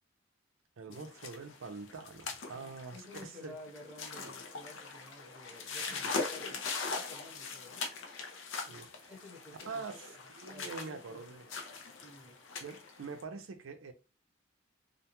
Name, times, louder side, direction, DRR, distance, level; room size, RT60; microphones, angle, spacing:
voice 1, 0.8-3.5 4.2-4.3 8.7-9.1 9.7-10.0 10.3-11.5 12.6-13.9, right 4 dB, 90° right, 0.5 m, -44 dB
sound 1, 0.9-13.2, left 4 dB, 80° left, 0.6 m, -41 dB
voice 2, 2.5-7.8 9.1-9.8 10.5-11.6 12.0-12.4, left 2 dB, 10° right, 0.7 m, -53 dB
2.5 x 2.2 x 2.9 m
head